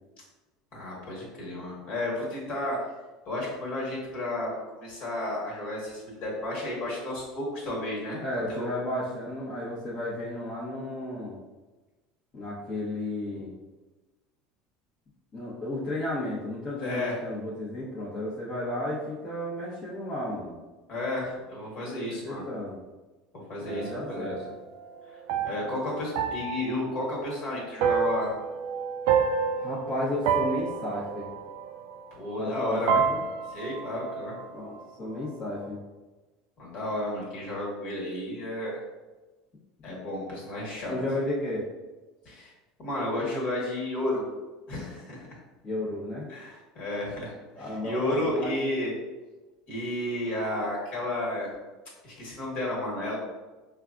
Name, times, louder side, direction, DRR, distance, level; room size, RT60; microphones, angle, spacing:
voice 1, 0.7-2.9 3.3-4.5 4.8-8.2 8.5-8.7 16.8-17.2 20.9-22.4 23.5-24.3 25.1-25.2 25.4-28.3 32.1-33.0 33.5-34.4 36.6-38.8 39.8-41.0 42.2-42.5 42.8-44.3 44.7-45.4 46.3-48.9 49.7-51.5 52.0-53.2, left 1 dB, 50° left, -4 dB, 1.5 m, -32 dB
voice 2, 8.2-11.4 12.3-13.5 15.3-20.6 22.2-22.8 23.6-24.5 29.6-31.3 32.4-33.2 34.5-35.8 40.9-41.6 45.6-46.2 47.5-48.5, left 1 dB, 30° left, -8 dB, 1.0 m, -33 dB
sound 1, 23.7-32.6 32.9-34.9, right 6 dB, 75° right, 0.3 m, -29 dB
4.6 x 2.3 x 2.5 m, 1.2 s
supercardioid pair, 95°, 3 cm